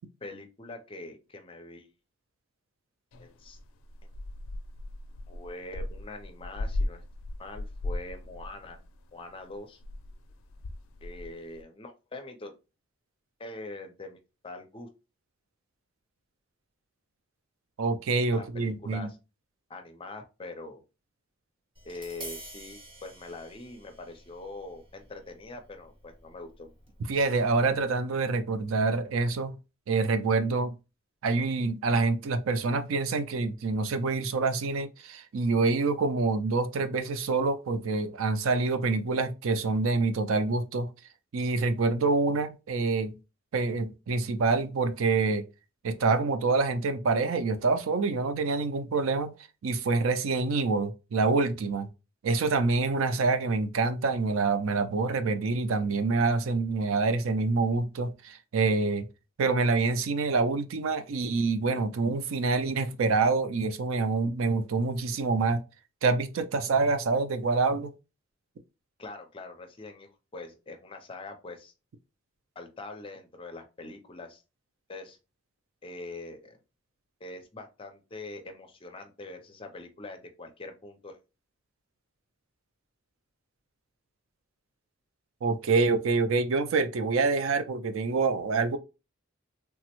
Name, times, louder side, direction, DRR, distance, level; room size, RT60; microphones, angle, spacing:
voice 1, 0.2-1.9 3.2-3.6 5.3-7.0 7.4-8.8 9.1-9.8 11.0-12.5 13.4-14.2 14.4-14.9 18.3-19.2 19.7-20.8 21.8-26.7 69.0-71.7 72.6-74.4 74.9-75.2 75.8-76.6 77.2-81.2, left 2 dB, 25° left, 0.5 m, -43 dB
sound 1, 3.1-9.3 9.5-11.6, left 1 dB, 80° left, 0.4 m, -37 dB
voice 2, 17.8-19.1 27.1-29.6 29.9-30.7 31.2-40.9 41.3-43.2 43.5-45.5 45.8-49.3 49.6-51.9 52.2-59.1 59.4-65.6 66.0-67.9 85.4-88.8, right 3 dB, 80° right, 0.4 m, -26 dB
Tap, 21.7-27.9, equal, 25° right, 1.0 m, -49 dB
3.4 x 2.0 x 2.9 m
head